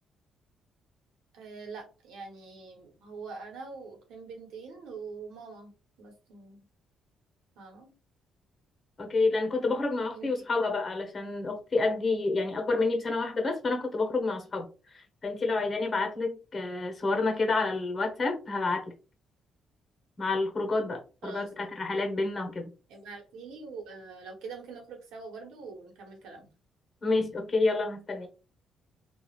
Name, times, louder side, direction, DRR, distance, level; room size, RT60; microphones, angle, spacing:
voice 1, 1.3-5.7 6.0-6.6 7.6-7.9 10.1-10.3 21.2-21.7 22.9-26.5, right 4 dB, 85° right, 0.9 m, -44 dB
voice 2, 9.0-18.8 20.2-22.7 27.0-28.3, left 3 dB, 35° left, 1.0 m, -29 dB
3.2 x 2.4 x 2.3 m
cardioid pair, 90°, 0 cm